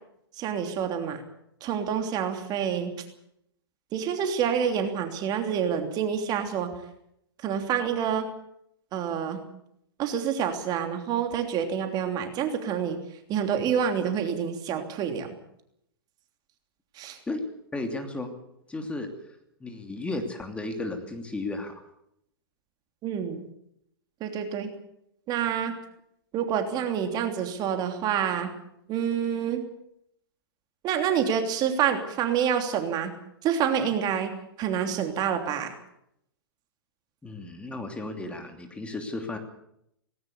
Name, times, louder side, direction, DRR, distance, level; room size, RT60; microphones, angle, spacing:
voice 1, 0.4-1.2 1.6-2.9 3.9-6.7 7.4-8.3 8.9-9.4 10.0-13.0 13.3-15.3 17.0-17.2 23.0-23.4 24.2-24.7 25.3-25.8 26.3-28.5 28.9-29.6 30.8-33.1 33.4-34.3 34.6-35.7, right 8 dB, 30° right, 6 dB, 3.1 m, -27 dB
voice 2, 17.7-18.3 18.7-19.1 19.6-21.7 37.2-39.4, left 2 dB, 10° left, 4 dB, 2.9 m, -34 dB
19.0 x 17.5 x 8.3 m, 0.75 s
hypercardioid pair, 110°, 13 cm